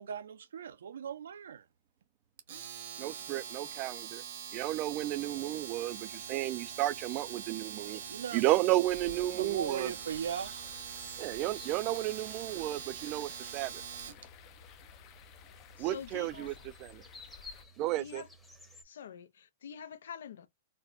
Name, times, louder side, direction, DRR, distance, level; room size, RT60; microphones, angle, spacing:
voice 1, 0.0-1.6 8.1-8.4 9.4-10.7, right 7 dB, 85° right, 0.5 m, -38 dB
Domestic sounds home sounds, 2.4-14.2, right 8 dB, 65° right, 0.9 m, -43 dB
voice 2, 3.0-4.2 4.5-8.0 8.3-9.9 11.2-13.8 15.8-16.5 16.8-17.0 17.8-18.2, right 16 dB, 35° right, 0.3 m, -32 dB
sound 1, 4.5-18.8, equal, 5° left, 0.8 m, -57 dB
sound 2, 8.9-17.6, left 9 dB, 35° left, 0.5 m, -55 dB
voice 3, 15.8-16.5 18.0-18.3 18.8-20.5, left 7 dB, 80° left, 0.6 m, -46 dB
4.1 x 2.2 x 2.5 m
hypercardioid pair, 150°, 0 cm